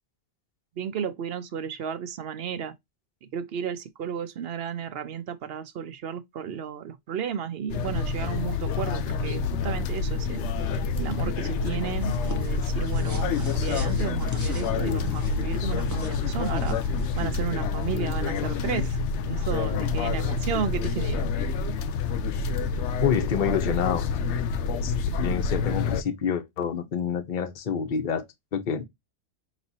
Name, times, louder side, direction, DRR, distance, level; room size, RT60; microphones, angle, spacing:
voice 1, 0.8-2.7 3.2-10.5 10.7-19.0 19.2-21.3, right 8 dB, 65° right, 0.9 m, -33 dB
sound 1, 7.7-26.0, left 5 dB, 85° left, 0.9 m, -27 dB
sound 2, 12.1-17.2, right 2 dB, 15° right, 1.1 m, -44 dB
voice 2, 23.0-24.1 24.8-24.9 25.2-28.2 28.5-28.8, left 7 dB, 50° left, 0.9 m, -27 dB
5.9 x 3.1 x 2.6 m
omnidirectional pair, 1.2 m